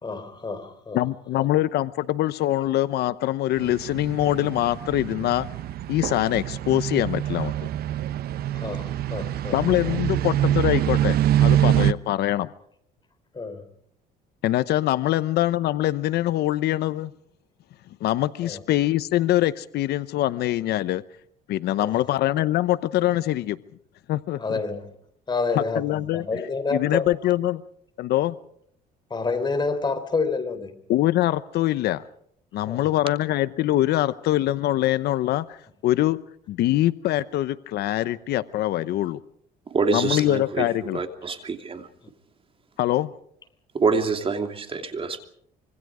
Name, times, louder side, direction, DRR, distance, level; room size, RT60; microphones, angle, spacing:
voice 1, 0.0-1.0 8.5-9.6 9.8-10.0 13.3-13.6 18.4-18.6 21.8-22.0 24.4-24.8 25.3-27.0 29.1-30.7 32.7-32.9, left 4 dB, 25° left, 3.6 m, -28 dB
voice 2, 0.9-5.5 5.9-7.5 9.5-12.5 14.4-17.1 18.0-21.0 21.5-23.6 24.1-24.6 25.5-26.2 26.7-27.6 28.0-28.4 30.9-32.0 32.5-35.6 35.8-36.2 36.5-39.2 39.9-41.0 42.8-43.1, left 14 dB, 75° left, 0.9 m, -23 dB
sound 1, 3.6-11.9, right 12 dB, 65° right, 0.9 m, -25 dB
voice 3, 39.7-41.9 43.7-45.2, right 4 dB, 35° right, 2.9 m, -26 dB
26.0 x 25.0 x 5.0 m
cardioid pair, 110°, 17 cm